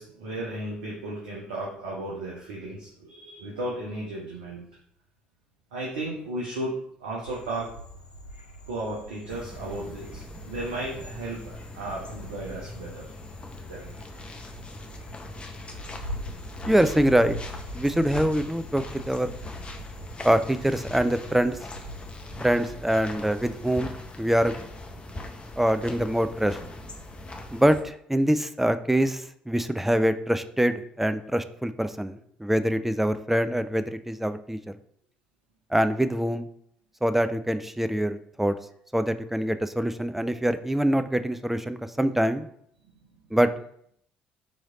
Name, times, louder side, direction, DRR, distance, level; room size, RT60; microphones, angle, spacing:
voice 1, 0.0-4.6 5.7-6.7 7.0-7.7 8.7-13.0 13.6-13.9, right 1 dB, 75° right, -4 dB, 0.8 m, -34 dB
Frog, 7.2-22.1, right 1 dB, 85° left, 0.5 m, -43 dB
sound 1, 9.3-27.8, left 2 dB, 25° left, 0.7 m, -41 dB
voice 2, 16.7-17.4 17.7-19.3 20.2-21.6 22.4-24.5 25.6-26.6 27.5-34.6 35.7-36.5 37.0-38.6 38.9-42.5 43.3-43.5, equal, 5° right, 10 dB, 0.4 m, -24 dB
4.0 x 3.1 x 3.7 m, 0.68 s
figure-of-eight pair, 50°, 5 cm